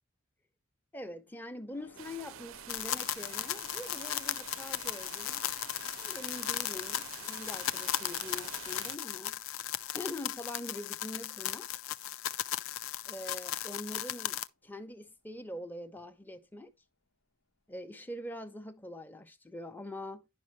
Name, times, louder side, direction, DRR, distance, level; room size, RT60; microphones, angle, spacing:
voice 1, 0.9-5.4 6.0-9.4 9.9-11.7 13.0-16.7 17.7-20.3, left 1 dB, 10° left, 0.6 m, -44 dB
sound 1, 1.7-16.3 16.6-16.8, left 3 dB, 85° left, 1.3 m, -62 dB
sound 2, 2.0-9.0, right 11 dB, 70° right, 0.4 m, -48 dB
sound 3, 2.7-14.5, left 12 dB, 70° left, 0.4 m, -36 dB
10.5 x 5.3 x 3.1 m
head